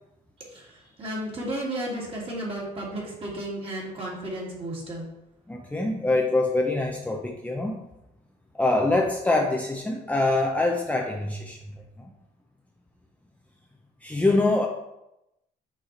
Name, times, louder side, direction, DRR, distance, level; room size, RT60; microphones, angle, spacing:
voice 1, 0.4-5.0, right 1 dB, 35° right, -3 dB, 2.6 m, -33 dB
voice 2, 5.5-7.9 8.5-11.6 12.0-12.1 14.0-14.7, left 2 dB, 10° left, 0 dB, 0.7 m, -24 dB
6.5 x 4.8 x 4.3 m, 0.87 s
cardioid pair, 110°, 17 cm